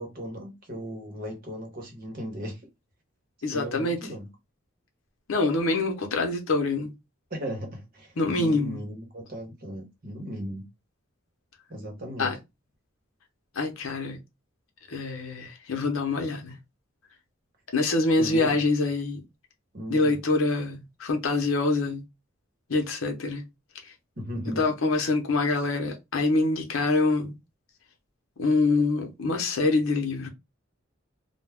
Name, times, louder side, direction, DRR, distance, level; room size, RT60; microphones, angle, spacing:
voice 1, 0.0-2.6 3.5-4.3 7.3-10.6 11.7-12.3 18.2-18.6 19.7-20.2 24.2-24.6, equal, 45° right, 0.9 m, -37 dB
voice 2, 3.4-4.0 5.3-6.9 8.2-8.8 12.2-12.3 13.5-14.2 14.9-16.6 17.7-19.2 19.9-22.0 22.7-23.4 24.6-27.4 28.4-30.3, left 3 dB, 80° left, 0.7 m, -25 dB
2.2 x 2.2 x 3.3 m
head